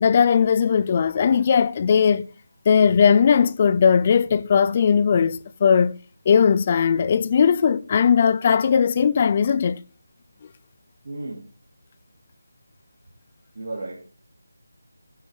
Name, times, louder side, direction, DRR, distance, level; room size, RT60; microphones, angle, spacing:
voice 1, 0.0-2.3 2.7-6.0 6.3-9.8, left 7 dB, 25° left, 0.4 m, -18 dB
voice 2, 11.0-11.4 13.5-14.0, right 2 dB, 60° right, 2.7 m, -33 dB
10.5 x 4.8 x 7.2 m
figure-of-eight pair, 170°, 0 cm